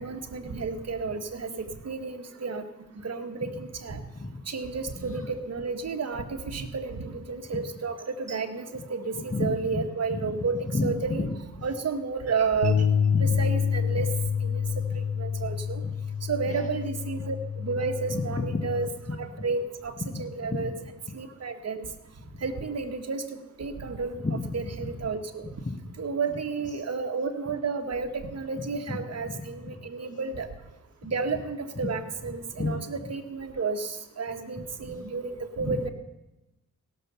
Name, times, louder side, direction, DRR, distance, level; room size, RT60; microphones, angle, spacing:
voice 1, 0.0-2.6 3.0-4.0 4.5-8.6 8.9-11.2 11.6-12.9 13.2-14.1 14.4-14.6 14.9-15.8 16.3-18.9 19.2-19.9 20.2-20.7 21.1-21.8 22.4-23.2 23.6-24.2 24.5-25.4 26.0-30.5 31.0-35.9, right 4 dB, 55° right, 6 dB, 1.4 m, -31 dB
voice 2, 4.9-5.3 7.5-7.6 8.7-8.8 9.1-10.3 10.7-11.7 13.1-13.3 14.0-14.1 15.8-16.0 16.5-16.7 18.1-19.5 20.0-20.7 24.2-24.9 25.6-25.9 26.6-26.8 28.6-30.1 31.7-31.9 32.6-32.7 33.0-33.1 34.6-35.1 35.6-35.7, left 3 dB, 25° left, 3 dB, 1.3 m, -34 dB
sound 1, 12.6-18.9, left 7 dB, 80° left, 0.7 m, -27 dB
17.0 x 6.6 x 6.8 m, 1.0 s
cardioid pair, 60°, 30 cm